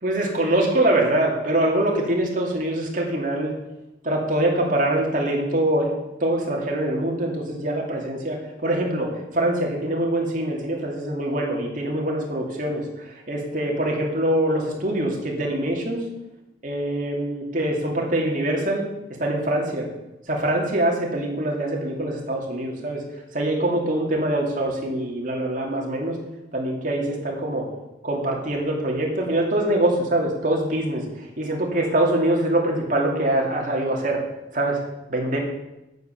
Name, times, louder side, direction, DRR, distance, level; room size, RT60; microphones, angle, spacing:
voice 1, 0.0-3.5 4.0-5.9 6.2-12.8 13.1-16.0 16.6-18.9 19.2-19.9 20.3-23.0 23.3-26.2 26.5-27.7 28.0-31.0 31.4-34.2 34.5-34.8 35.1-35.4, right 1 dB, 45° right, -1 dB, 2.7 m, -24 dB
9.8 x 9.2 x 6.8 m, 0.94 s
head